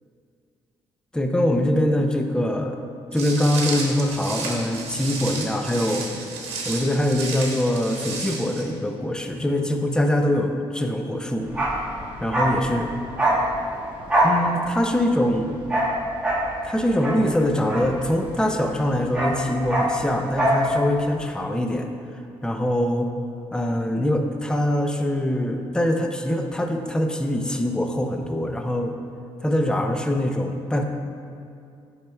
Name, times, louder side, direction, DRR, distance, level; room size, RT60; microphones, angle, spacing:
voice 1, 1.1-2.8 3.1-6.1 6.7-11.5 12.2-12.9 14.2-15.6 16.6-21.9 22.4-23.1 23.5-28.9 29.4-30.8, left 1 dB, 10° left, 4 dB, 0.5 m, -23 dB
Walk footsteps, 3.1-8.6, right 4 dB, 85° right, 1.0 m, -32 dB
Bark, 11.5-18.5 18.8-20.7 20.9-21.1, right 1 dB, 10° right, 1.5 m, -24 dB
9.4 x 5.7 x 2.3 m, 2.4 s
cardioid pair, 85°, 10 cm